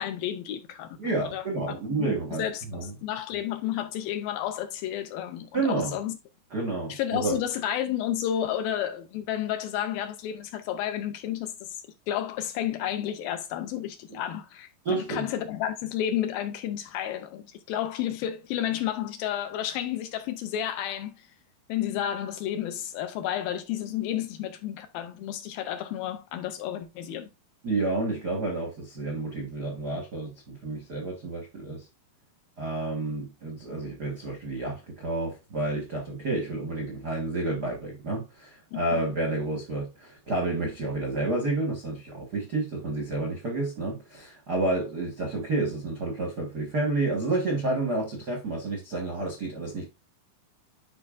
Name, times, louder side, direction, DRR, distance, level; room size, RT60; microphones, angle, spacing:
voice 1, 0.0-1.0 1.3-1.4 1.9-6.2 6.9-11.8 12.1-21.3 21.7-27.3 38.7-38.8, left 11 dB, 80° left, 2.2 m, -31 dB
voice 2, 1.0-2.9 5.5-5.9 6.5-7.4 14.8-15.2 27.6-31.8 32.6-49.8, right 2 dB, 80° right, 0.8 m, -30 dB
11.0 x 4.6 x 2.5 m
omnidirectional pair, 4.5 m